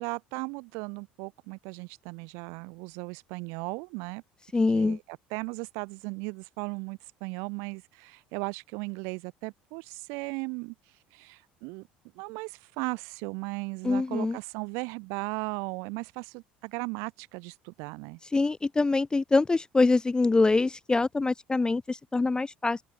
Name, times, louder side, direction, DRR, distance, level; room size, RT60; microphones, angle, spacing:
voice 1, 0.0-4.2 4.7-10.7 11.1-11.9 12.1-18.2, right 32 dB, 65° right, 1.6 m, -37 dB
voice 2, 4.5-5.0 13.8-14.4 18.3-22.8, left 3 dB, 15° left, 0.4 m, -24 dB
open air
figure-of-eight pair, 60°, 5 cm